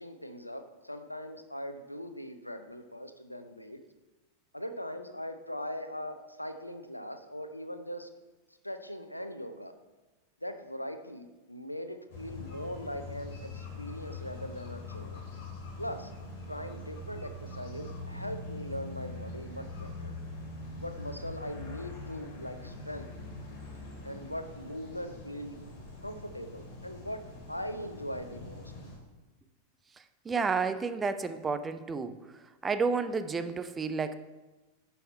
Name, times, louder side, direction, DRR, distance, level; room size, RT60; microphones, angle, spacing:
voice 1, 0.0-3.8 4.5-8.1 8.5-9.7 10.4-15.2 15.8-16.1 16.5-20.1 20.8-23.1 24.0-25.6 26.0-27.2 27.5-28.7, equal, 85° left, 9 dB, 0.6 m, -40 dB
sound 1, 12.1-29.0, left 2 dB, 45° left, 2.5 m, -43 dB
voice 2, 30.3-32.2 32.6-34.2, right 4 dB, 15° right, 10 dB, 0.5 m, -30 dB
11.0 x 5.6 x 4.3 m, 1.1 s
figure-of-eight pair, 90°, 0 cm